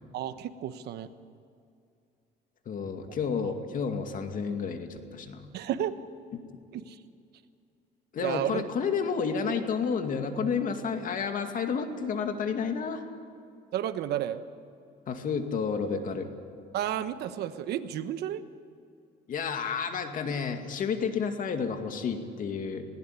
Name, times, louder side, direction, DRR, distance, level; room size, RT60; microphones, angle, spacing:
voice 1, 0.1-1.1 3.1-3.2 3.4-3.5 5.5-5.9 6.7-7.0 8.2-8.6 13.7-14.4 16.7-18.4, right 11 dB, 75° right, 11 dB, 1.2 m, -32 dB
voice 2, 2.7-5.4 8.1-13.0 15.1-16.3 19.3-22.9, left 6 dB, 55° left, 6 dB, 2.3 m, -30 dB
19.5 x 17.5 x 9.9 m, 2.5 s
cardioid pair, 110°, 17 cm